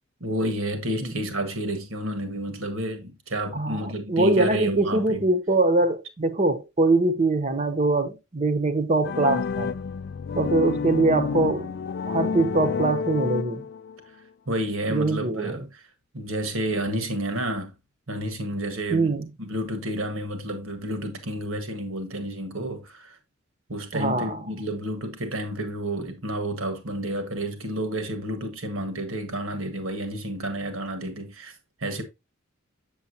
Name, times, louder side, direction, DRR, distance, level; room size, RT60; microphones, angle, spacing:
voice 1, 0.2-5.3 14.5-15.9 16.1-17.7 18.1-23.2 23.7-31.6 31.8-32.0, right 1 dB, 75° right, 1.7 m, -30 dB
voice 2, 3.5-9.7 10.3-11.7 12.1-13.7 14.9-15.6 18.9-19.3 23.9-24.4, right 2 dB, 35° right, 1.0 m, -23 dB
sound 1, 9.0-14.0, left 5 dB, 50° left, 0.4 m, -29 dB
7.3 x 7.2 x 2.8 m
head